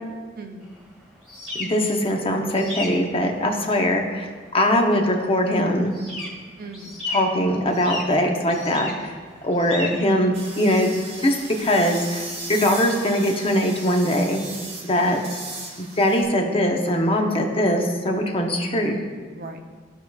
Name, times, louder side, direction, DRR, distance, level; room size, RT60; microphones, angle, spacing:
voice 1, 0.4-0.7 6.6-7.0 9.7-10.3 15.0-15.3 18.7-19.0 19.3-19.6, right 2 dB, 55° right, 4 dB, 0.7 m, -40 dB
sound 1, 0.6-13.8, left 2 dB, 5° right, 1.7 m, -38 dB
voice 2, 1.6-6.0 7.1-9.1 9.4-11.0 11.2-14.4 14.8-15.4 15.8-19.0, equal, 30° left, 2 dB, 0.8 m, -21 dB
sound 2, 10.3-16.2, right 3 dB, 35° right, 1.2 m, -36 dB
14.0 x 4.7 x 2.4 m, 1.5 s
head